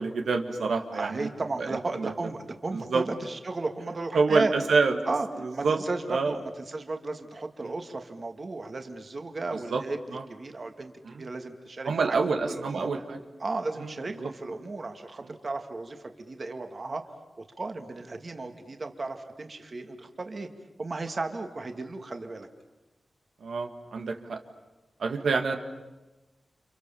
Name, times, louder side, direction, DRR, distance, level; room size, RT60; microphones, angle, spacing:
voice 1, 0.0-1.3 1.6-2.1 2.7-3.1 4.1-5.0 5.4-5.8 6.1-6.3 7.6-7.7 9.7-9.8 10.1-10.2 11.1-11.3 11.9-13.2 14.2-14.3 23.4-24.4 25.0-25.6, right 4 dB, 90° right, 4 dB, 2.1 m, -27 dB
voice 2, 0.9-4.5 5.1-6.4 6.7-10.0 10.3-12.2 12.4-12.9 13.4-17.1 17.4-20.5 20.8-22.5, right 3 dB, 40° right, 5 dB, 2.0 m, -34 dB
30.0 x 28.0 x 7.1 m, 1.1 s
wide cardioid pair, 125°, 0 cm